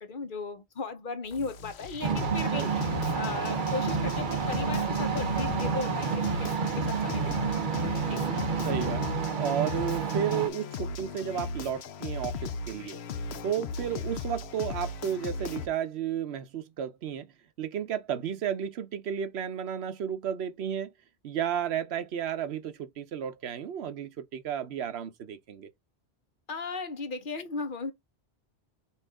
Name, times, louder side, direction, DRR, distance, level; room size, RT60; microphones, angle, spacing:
voice 1, 0.0-2.7 3.1-7.6 8.0-8.3 26.5-27.9, left 4 dB, 55° left, 0.9 m, -36 dB
sound 1, 1.3-15.7, left 4 dB, 80° left, 0.9 m, -37 dB
sound 2, 2.0-10.5, right 6 dB, 55° right, 0.9 m, -29 dB
voice 2, 8.7-9.0 9.4-13.0 13.4-17.3 17.6-20.9 21.2-25.7, right 9 dB, 80° right, 1.0 m, -33 dB
5.7 x 2.6 x 3.5 m
omnidirectional pair, 1.1 m